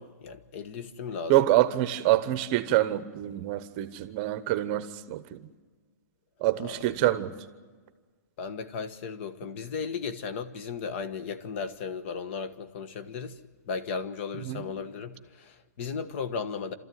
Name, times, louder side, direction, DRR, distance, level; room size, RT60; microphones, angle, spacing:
voice 1, 0.0-1.5 6.6-7.1 8.4-13.4 13.7-16.7, left 5 dB, 40° left, 1.3 m, -36 dB
voice 2, 1.3-5.4 6.4-7.3 14.5-14.6, right 15 dB, 30° right, 1.0 m, -26 dB
28.5 x 13.5 x 9.3 m
hypercardioid pair, 165°, 10 cm